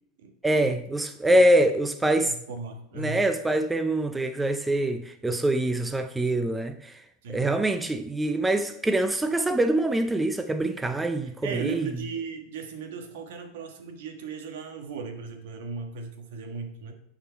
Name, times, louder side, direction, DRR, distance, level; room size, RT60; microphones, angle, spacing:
voice 1, 0.4-2.3 3.0-6.9 7.3-11.9, right 1 dB, 10° right, 0.5 m, -24 dB
voice 2, 2.2-3.3 7.2-7.6 11.4-16.9, right 5 dB, 75° right, 1.4 m, -37 dB
10.0 x 4.5 x 4.4 m
supercardioid pair, 120°, 0 cm